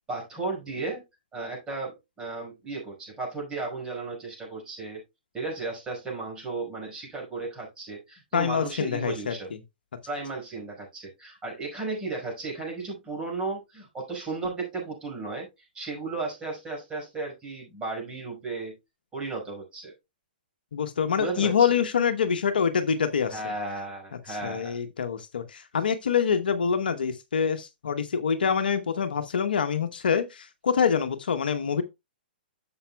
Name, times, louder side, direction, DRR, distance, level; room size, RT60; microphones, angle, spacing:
voice 1, 0.1-1.0 1.3-5.0 5.3-9.5 10.1-18.8 19.1-19.9 21.2-21.7 23.3-24.8, right 3 dB, 15° right, 5.2 m, -34 dB
voice 2, 8.3-9.3 20.7-23.5 24.3-31.8, left 7 dB, 70° left, 1.0 m, -25 dB
11.0 x 7.0 x 2.2 m
figure-of-eight pair, 120°, 5 cm